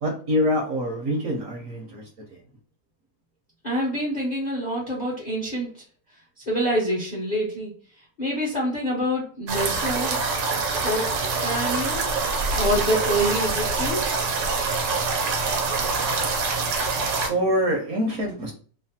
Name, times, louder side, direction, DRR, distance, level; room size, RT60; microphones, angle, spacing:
voice 1, 0.0-2.4 16.9-18.5, equal, 65° right, 0 dB, 0.9 m, -26 dB
voice 2, 3.6-5.7 6.5-7.7 8.2-10.2 10.8-11.1 11.4-12.1 12.5-14.2, equal, 45° left, -4 dB, 0.6 m, -26 dB
sound 1, 9.5-17.3, right 4 dB, 90° right, 1.3 m, -25 dB
3.2 x 2.0 x 2.7 m, 0.43 s
omnidirectional pair, 1.9 m